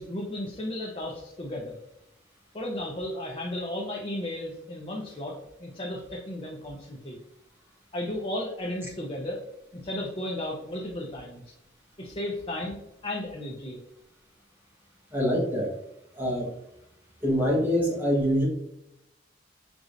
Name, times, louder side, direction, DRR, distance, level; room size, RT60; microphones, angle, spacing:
voice 1, 0.0-1.8 2.5-5.3 5.6-7.2 7.9-9.4 9.7-11.5 12.0-13.8, left 1 dB, 30° left, -1 dB, 0.7 m, -34 dB
voice 2, 15.1-15.7 16.2-16.5 17.2-18.5, equal, 10° right, -4 dB, 1.3 m, -25 dB
4.7 x 3.8 x 2.6 m, 0.84 s
head